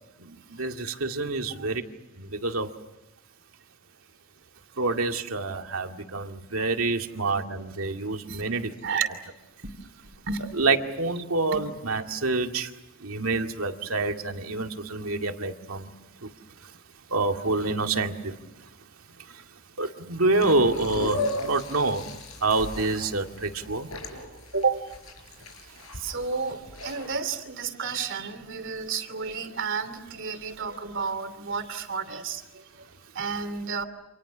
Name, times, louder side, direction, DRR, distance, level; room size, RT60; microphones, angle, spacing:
voice 1, 0.2-1.8 2.2-2.7 4.8-8.7 10.4-12.7 13.0-15.9 16.2-16.3 16.6-16.7 17.1-18.4 19.3-19.4 19.8-22.1 22.4-23.9, right 3 dB, 80° right, 4 dB, 2.2 m, -27 dB
sound 1, 20.4-27.2, left 1 dB, 85° left, 6.5 m, -36 dB
voice 2, 24.5-24.9 26.0-32.4 33.1-33.8, right 5 dB, 60° right, 9 dB, 3.0 m, -31 dB
29.0 x 27.5 x 6.2 m, 1.0 s
head